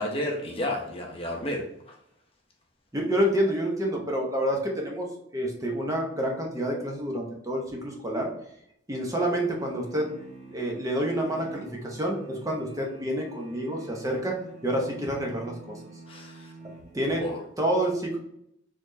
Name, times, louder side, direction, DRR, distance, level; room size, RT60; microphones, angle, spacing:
voice 1, 0.0-1.9 16.1-16.5 17.2-17.4, left 1 dB, 30° left, 0 dB, 0.7 m, -32 dB
voice 2, 2.9-8.3 8.9-10.1 10.5-15.8 16.9-17.2 17.6-18.2, right 1 dB, 15° right, 0 dB, 0.7 m, -28 dB
sound 1, 9.2-17.5, right 2 dB, 40° right, 1.3 m, -47 dB
4.1 x 3.1 x 2.6 m, 0.72 s
head